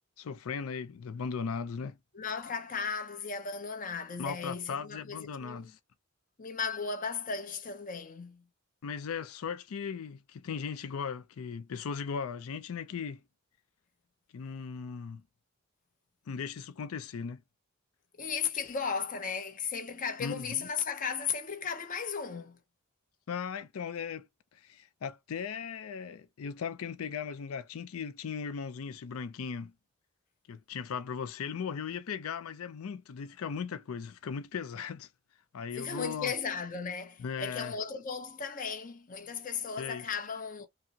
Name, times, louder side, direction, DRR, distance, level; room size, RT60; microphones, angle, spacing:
voice 1, 0.2-2.0 4.2-5.8 8.8-13.2 14.3-15.2 16.3-17.4 20.2-20.5 23.3-24.3 24.5-29.7 30.5-35.1 35.5-36.3 37.2-37.7 39.8-40.1, left 6 dB, 85° left, 0.4 m, -37 dB
voice 2, 2.1-5.7 6.4-8.4 18.2-22.6 35.7-40.7, left 6 dB, 40° left, 0.6 m, -36 dB
5.7 x 2.0 x 2.7 m
head